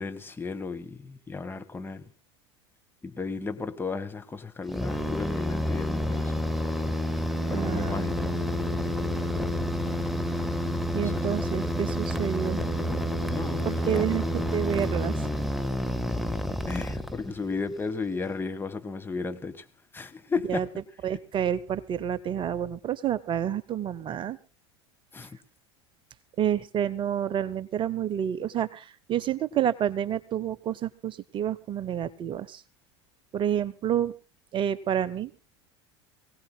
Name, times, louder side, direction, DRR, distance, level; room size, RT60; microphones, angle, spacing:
voice 1, 0.0-2.0 3.0-6.5 7.5-8.2 10.9-11.3 13.3-14.1 16.6-19.6 19.9-20.6 25.1-25.4, left 4 dB, 15° left, 1.5 m, -34 dB
sound 1, 4.7-17.5, equal, ahead, 1.4 m, -29 dB
voice 2, 7.5-8.0 10.9-12.6 13.6-15.3 20.5-20.7 21.0-24.4 26.4-32.6 33.3-34.1 34.5-35.3, right 9 dB, 35° right, 0.7 m, -29 dB
23.5 x 17.0 x 2.2 m
hypercardioid pair, 80°, 15 cm